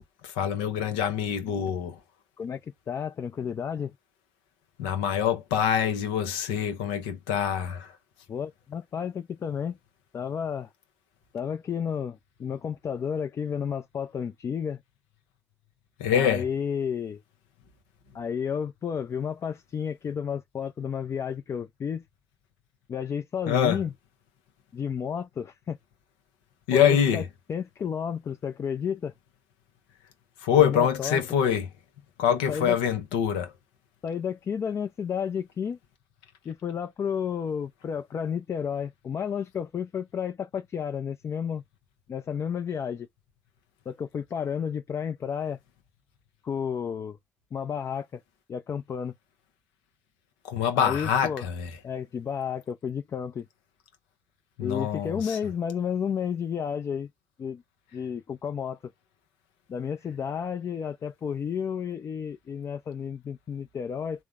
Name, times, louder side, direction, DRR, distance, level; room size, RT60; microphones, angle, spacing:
voice 1, 0.4-2.0 4.8-7.9 16.0-16.4 23.5-23.8 26.7-27.2 30.4-31.7 32.2-33.5 50.5-51.7 54.6-55.4, left 8 dB, 85° left, 0.6 m, -25 dB
voice 2, 2.4-3.9 8.3-9.8 10.1-10.7 11.3-14.8 16.1-17.2 18.1-22.0 22.9-23.9 24.7-25.8 26.7-27.2 27.5-29.1 30.5-31.2 32.3-32.8 34.0-35.8 36.4-41.6 42.1-43.1 43.9-45.6 46.4-47.2 47.5-48.2 48.5-49.1 50.7-51.5 51.8-53.5 54.6-57.1 57.4-57.6 57.9-58.8 59.7-64.2, left 7 dB, 50° left, 0.5 m, -31 dB
3.5 x 2.1 x 3.5 m
hypercardioid pair, 50°, 6 cm